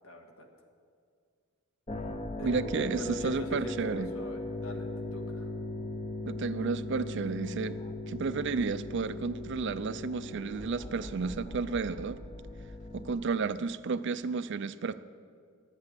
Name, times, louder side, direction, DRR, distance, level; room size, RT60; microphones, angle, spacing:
voice 1, 0.0-0.5 2.4-5.5, left 1 dB, 65° left, 3 dB, 1.6 m, -43 dB
sound 1, 1.9-13.1, left 2 dB, 25° left, 0.7 m, -39 dB
voice 2, 2.4-4.1 6.2-7.8 8.1-12.2 12.9-14.9, right 4 dB, 55° right, 14 dB, 0.4 m, -32 dB
11.5 x 8.2 x 8.1 m, 2.2 s
head